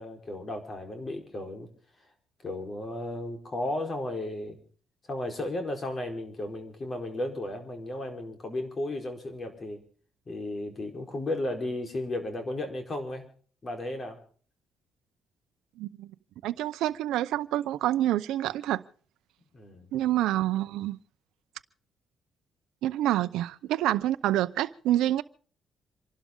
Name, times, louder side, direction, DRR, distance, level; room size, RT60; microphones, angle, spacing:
voice 1, 0.0-1.7 2.4-4.6 5.1-9.8 10.3-13.3 13.6-14.2 19.5-19.9, left 1 dB, 35° left, 4.5 m, -34 dB
voice 2, 15.8-16.1 16.4-18.8 19.9-21.0 22.8-25.2, right 13 dB, 90° right, 0.7 m, -27 dB
27.5 x 12.0 x 3.8 m
cardioid pair, 90°, 0 cm